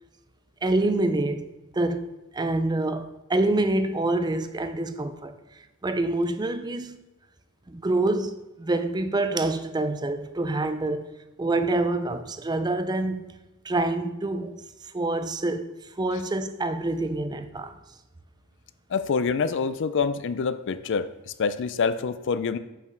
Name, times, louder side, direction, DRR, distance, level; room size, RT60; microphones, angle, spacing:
voice 1, 0.6-5.4 5.8-7.0 7.7-11.1 11.4-13.4 13.6-14.6 14.9-17.7, right 2 dB, 20° right, 0.4 m, -26 dB
voice 2, 18.9-22.6, left 5 dB, 55° left, 0.4 m, -26 dB
5.4 x 5.0 x 6.0 m
head